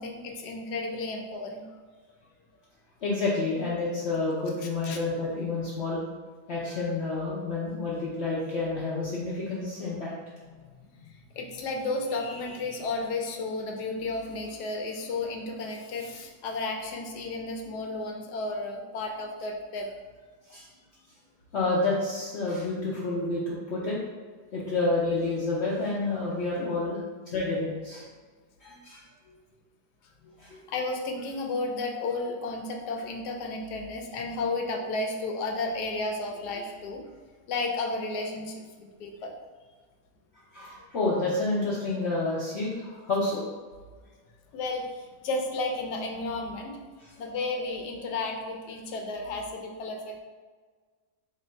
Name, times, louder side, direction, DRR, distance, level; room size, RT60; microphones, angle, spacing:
voice 1, 0.0-1.7 4.8-5.0 10.8-19.9 28.7-29.0 29.3-29.4 30.2-30.3 30.7-37.0 37.5-39.3 44.5-46.8 47.2-50.2, left 3 dB, 80° left, 2 dB, 1.2 m, -33 dB
voice 2, 3.0-6.0 6.5-10.1 20.5-20.7 21.5-24.0 24.5-27.0 27.3-28.0 28.6-29.0 30.4-30.6 40.5-43.4, left 2 dB, 55° left, -6 dB, 0.7 m, -29 dB
3.6 x 2.6 x 4.3 m, 1.5 s
omnidirectional pair, 1.8 m